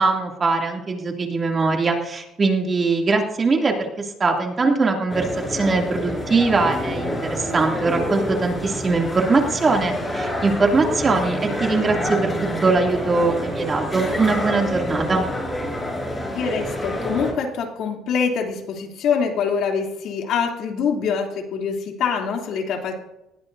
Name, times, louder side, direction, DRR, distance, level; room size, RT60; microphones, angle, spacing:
voice 1, 0.0-12.3 12.6-15.3, right 3 dB, 30° right, 1 dB, 2.7 m, -21 dB
sound 1, 5.1-17.3, left 1 dB, 10° left, 5.9 m, -28 dB
sound 2, 11.0-16.2, right 6 dB, 70° right, 4.6 m, -37 dB
voice 2, 16.3-22.9, left 6 dB, 65° left, 2 dB, 3.1 m, -24 dB
19.5 x 16.5 x 2.7 m, 0.90 s
cardioid pair, 110°, 0 cm